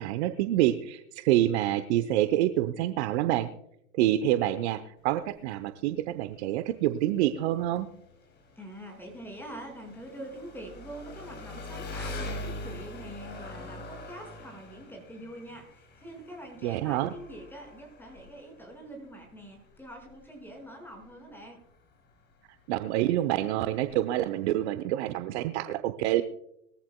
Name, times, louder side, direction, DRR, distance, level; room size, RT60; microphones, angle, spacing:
voice 1, 0.0-3.5 4.0-7.9 16.6-17.1 22.7-26.2, right 13 dB, 50° right, 10 dB, 0.8 m, -27 dB
Engine, 5.0-24.6, left 1 dB, 25° left, 2.7 m, -44 dB
voice 2, 8.6-21.6, right 1 dB, 5° left, 2 dB, 5.4 m, -44 dB
21.0 x 14.5 x 2.2 m, 0.76 s
hypercardioid pair, 110°, 44 cm